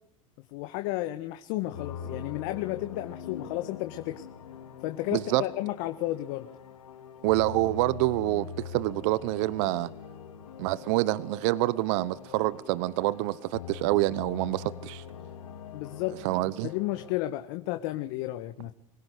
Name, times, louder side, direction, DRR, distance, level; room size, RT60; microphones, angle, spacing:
voice 1, 0.5-4.2 4.8-6.5 15.7-16.2 16.6-18.7, left 16 dB, 60° left, 1.7 m, -32 dB
sound 1, 1.7-17.2, left 7 dB, 85° left, 2.9 m, -43 dB
voice 2, 5.1-5.4 7.2-9.9 10.6-15.0 16.2-16.7, right 18 dB, 65° right, 0.9 m, -27 dB
25.0 x 17.0 x 8.1 m
hypercardioid pair, 95°, 17 cm